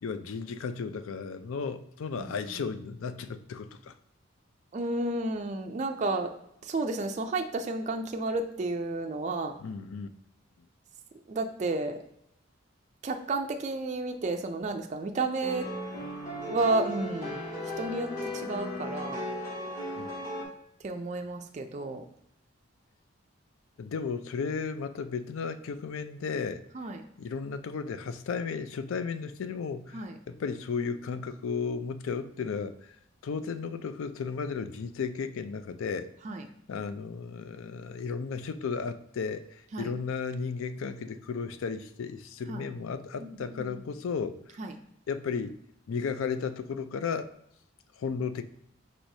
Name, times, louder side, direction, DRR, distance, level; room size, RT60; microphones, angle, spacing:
voice 1, 0.0-3.9 9.6-10.1 20.0-20.1 23.8-26.6 27.2-33.0 33.2-36.1 36.7-44.4 45.1-45.6 45.9-47.3 48.0-48.4, left 5 dB, 75° left, 11 dB, 0.4 m, -34 dB
voice 2, 2.2-2.7 4.7-6.3 6.6-9.6 11.3-12.0 13.0-15.7 16.5-17.5 17.8-19.2 20.8-22.0 26.7-27.0 29.9-30.2 36.2-36.5 39.7-39.9 42.5-42.7 43.2-43.8 44.6-44.8, right 2 dB, 35° right, 4 dB, 0.3 m, -32 dB
sound 1, 15.4-20.5, left 1 dB, 35° left, 1.4 m, -36 dB
4.6 x 4.0 x 2.7 m, 0.75 s
head